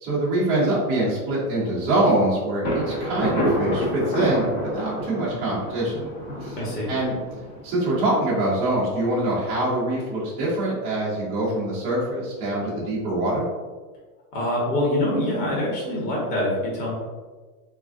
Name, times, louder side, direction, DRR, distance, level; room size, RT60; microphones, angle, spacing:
voice 1, 0.0-6.1 6.4-6.6 6.9-7.1 7.6-13.5, right 1 dB, 15° right, -8 dB, 0.4 m, -24 dB
Thunder, 2.6-8.3, equal, 35° left, 0.6 m, -29 dB
voice 2, 6.6-6.9 14.3-16.9, left 1 dB, 80° left, -4 dB, 1.3 m, -25 dB
3.3 x 2.5 x 2.4 m, 1.4 s
supercardioid pair, 160°, 46 cm